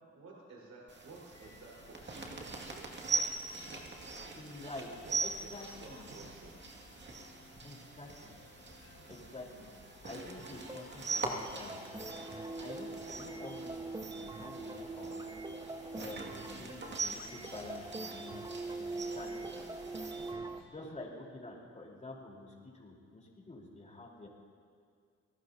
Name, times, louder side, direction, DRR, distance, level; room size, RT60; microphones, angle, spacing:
voice 1, 0.1-4.4 5.0-6.5 19.4-19.6, right 3 dB, 60° right, -4 dB, 4.8 m, -54 dB
sound 1, 0.9-20.3, right 3 dB, 35° right, 2.3 m, -42 dB
sound 2, 1.3-20.7, left 4 dB, 60° left, 2.9 m, -60 dB
voice 2, 4.3-4.9 5.2-6.1 7.6-8.4 9.1-9.6 10.0-15.2 15.9-19.4 20.7-24.3, left 2 dB, 25° left, -2 dB, 4.2 m, -48 dB
sound 3, 10.4-20.6, right 2 dB, 15° right, 0.8 m, -43 dB
28.0 x 18.0 x 2.9 m, 2.1 s
cardioid pair, 90°, 30 cm